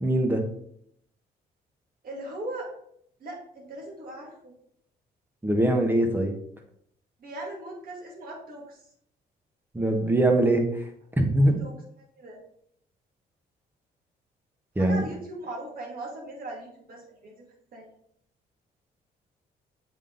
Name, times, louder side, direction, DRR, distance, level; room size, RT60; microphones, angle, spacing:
voice 1, 0.0-0.4 5.4-6.3 9.7-10.6 11.2-11.6 14.8-15.0, right 1 dB, 10° right, 4 dB, 1.2 m, -22 dB
voice 2, 2.0-2.7 3.2-4.5 7.2-8.8 11.6-12.4 14.8-17.3 17.7-17.9, right 1 dB, 60° right, -1 dB, 2.3 m, -39 dB
7.5 x 3.7 x 3.9 m, 0.70 s
cardioid pair, 90°, 17 cm